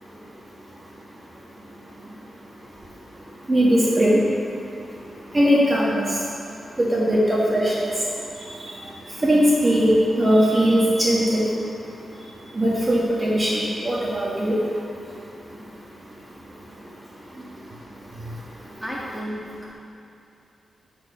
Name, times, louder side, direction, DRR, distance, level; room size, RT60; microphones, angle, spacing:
voice 1, 3.5-4.2 5.3-6.0 6.8-7.9 8.6-8.7 9.2-11.5 12.5-14.6, equal, 25° right, -5 dB, 1.3 m, -19 dB
voice 2, 18.6-19.7, equal, ahead, -5 dB, 1.6 m, -34 dB
6.7 x 4.4 x 6.8 m, 2.7 s
cardioid pair, 90°, 0 cm